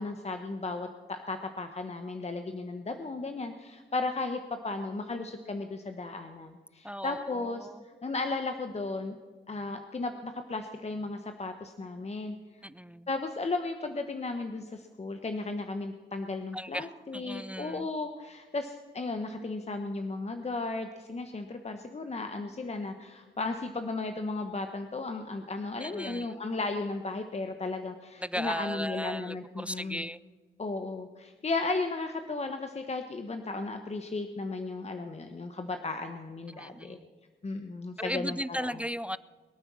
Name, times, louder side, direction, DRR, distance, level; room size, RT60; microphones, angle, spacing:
voice 1, 0.0-9.2 9.5-12.6 13.1-30.1 30.6-37.0 37.4-38.8, left 3 dB, 35° left, 6 dB, 1.1 m, -35 dB
voice 2, 6.8-7.8 12.6-13.1 16.5-16.9 17.1-17.9 25.8-26.3 28.2-30.2 36.5-37.1 38.0-39.2, equal, 5° right, 18 dB, 0.4 m, -36 dB
22.5 x 9.0 x 6.2 m, 1.4 s
cardioid pair, 80°, 20 cm